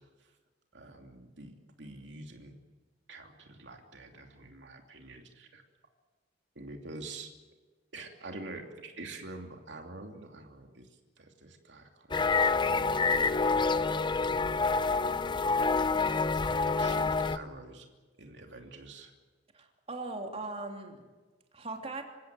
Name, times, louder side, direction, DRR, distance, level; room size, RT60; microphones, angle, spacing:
voice 1, 0.7-2.5 3.1-5.6 6.5-7.3 7.9-10.9 11.2-13.6 16.4-17.9 18.2-19.1, right 2 dB, 75° right, 3 dB, 2.8 m, -47 dB
sound 1, 12.1-17.4, left 4 dB, 25° left, 0.7 m, -27 dB
voice 2, 19.5-21.0 21.5-22.0, right 3 dB, 35° right, 3 dB, 3.2 m, -39 dB
27.5 x 16.0 x 9.2 m, 1.3 s
head